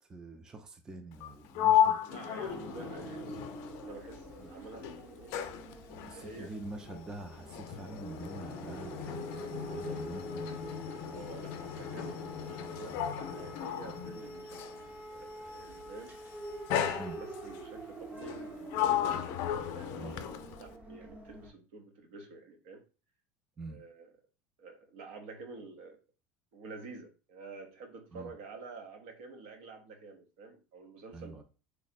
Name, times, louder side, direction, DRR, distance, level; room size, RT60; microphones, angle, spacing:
voice 1, 0.0-2.0 4.4-4.5 6.1-10.4 12.9-13.1 17.0-17.2 19.9-20.3 23.6-23.8 28.1-28.3 31.1-31.4, right 2 dB, 15° right, 6 dB, 0.4 m, -46 dB
Sliding door, 1.1-4.4 4.7-14.9 15.8-16.1 16.7-17.6 18.2-20.7, left 10 dB, 55° left, 0.4 m, -34 dB
voice 2, 2.0-3.5 3.8-5.4 6.0-6.5 10.0-10.1 11.1-14.7 15.1-16.2 16.8-19.3 19.7-20.3 20.6-22.8 23.7-24.1 24.6-26.0 26.5-31.4, right 3 dB, 75° right, 5 dB, 0.8 m, -49 dB
sound 1, 2.5-21.5, right 1 dB, 30° right, 0.9 m, -46 dB
3.3 x 2.1 x 4.1 m, 0.34 s
cardioid pair, 150°, 5 cm